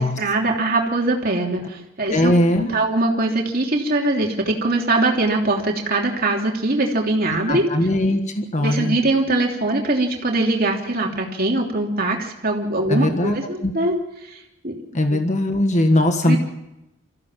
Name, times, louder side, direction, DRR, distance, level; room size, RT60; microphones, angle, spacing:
voice 1, 0.0-7.7 8.6-14.0 14.2-14.7 15.1-15.2 16.2-16.4, right 2 dB, 45° right, 1 dB, 3.2 m, -22 dB
voice 2, 2.1-2.7 7.5-9.0 12.9-13.4 13.6-13.7 14.9-16.4, left 1 dB, 35° left, 5 dB, 1.5 m, -19 dB
24.5 x 15.0 x 7.4 m, 0.89 s
head